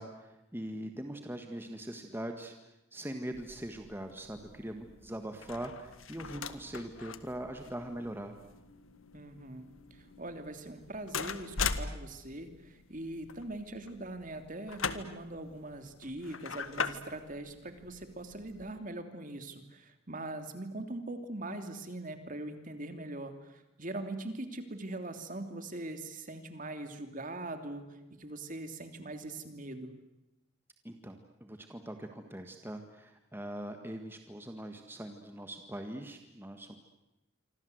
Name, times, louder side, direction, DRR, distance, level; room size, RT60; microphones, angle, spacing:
voice 1, 0.0-2.5 2.9-8.3 30.8-36.7, right 1 dB, 10° right, 5 dB, 1.8 m, -42 dB
sound 1, 3.3-18.8, left 5 dB, 85° left, 1.7 m, -42 dB
voice 2, 9.1-9.7 10.2-27.8 28.2-29.9, right 2 dB, 40° right, 7 dB, 3.0 m, -42 dB
27.0 x 25.5 x 8.1 m, 0.94 s
head